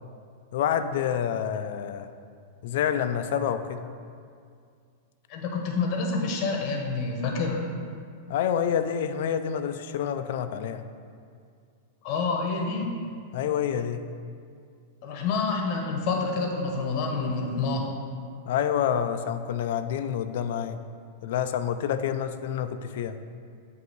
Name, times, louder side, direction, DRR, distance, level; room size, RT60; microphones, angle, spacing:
voice 1, 0.5-2.1 2.6-3.8 8.3-10.8 13.3-14.0 18.5-20.8 21.2-23.2, left 9 dB, 65° left, 10 dB, 0.3 m, -28 dB
voice 2, 5.3-7.6 12.0-12.9 15.0-17.9, left 4 dB, 45° left, 1 dB, 0.9 m, -28 dB
7.9 x 2.7 x 4.6 m, 2.2 s
hypercardioid pair, 135°, 0 cm